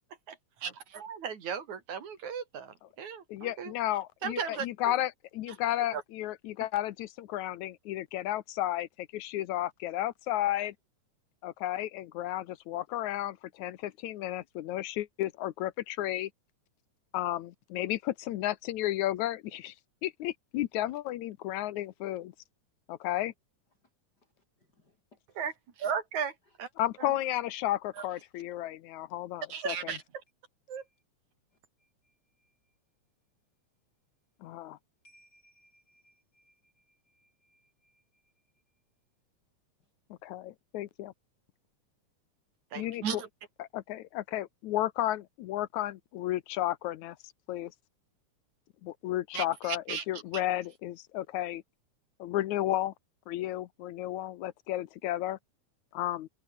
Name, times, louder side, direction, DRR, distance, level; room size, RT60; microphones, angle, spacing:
voice 1, 0.3-3.7 4.2-5.0 5.9-6.0 25.4-25.5 25.8-26.7 27.0-27.2 28.0-28.1 29.5-30.0 30.7-30.8 42.7-43.3 49.3-50.5, right 7 dB, 70° right, 4.1 m, -36 dB
voice 2, 3.3-10.7 11.4-16.3 17.1-19.7 20.0-22.3 22.9-23.3 26.8-30.0 34.4-34.8 40.2-41.1 42.8-43.2 43.6-47.2 47.5-47.7 48.8-51.6 52.2-52.9 53.3-55.4 55.9-56.3, left 14 dB, 80° left, 2.2 m, -33 dB
voice 3, 24.2-25.2 30.7-31.0 31.8-32.8 35.0-38.3, equal, 30° left, 5.6 m, -67 dB
open air
omnidirectional pair, 3.5 m